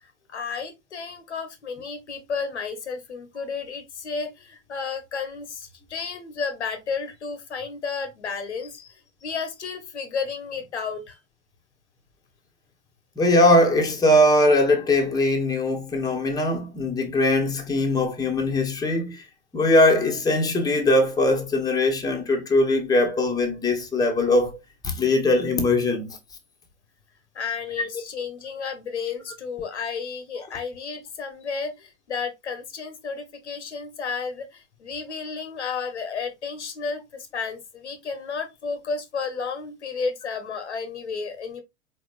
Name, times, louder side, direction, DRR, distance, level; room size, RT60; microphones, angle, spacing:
voice 1, 0.0-11.2 27.3-41.6, left 5 dB, 70° left, 1.3 m, -32 dB
voice 2, 13.2-19.2 19.5-24.6 24.8-26.2, left 1 dB, 10° left, 1.3 m, -21 dB
4.6 x 4.2 x 2.5 m
figure-of-eight pair, 90°, 36 cm